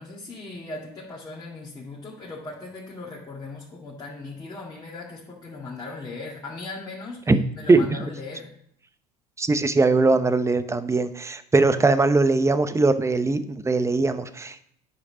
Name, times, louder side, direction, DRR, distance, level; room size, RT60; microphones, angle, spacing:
voice 1, 0.0-8.5, left 3 dB, 20° left, -6 dB, 2.1 m, -38 dB
voice 2, 9.4-14.6, right 3 dB, 15° right, 11 dB, 0.8 m, -20 dB
9.9 x 5.1 x 5.0 m, 0.67 s
hypercardioid pair, 80°, 19 cm